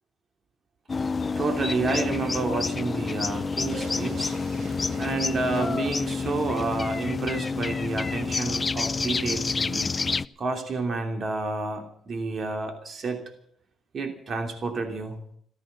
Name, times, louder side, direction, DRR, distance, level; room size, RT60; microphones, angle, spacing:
sound 1, 0.9-10.3, left 4 dB, 30° left, 0.5 m, -28 dB
voice 1, 1.4-4.3 5.0-10.0 10.4-13.2 13.9-15.2, right 3 dB, 50° right, 4 dB, 2.9 m, -30 dB
sound 2, 3.7-7.5, right 6 dB, 75° right, 2.0 m, -44 dB
15.0 x 14.0 x 6.8 m, 0.65 s
cardioid pair, 90°, 0 cm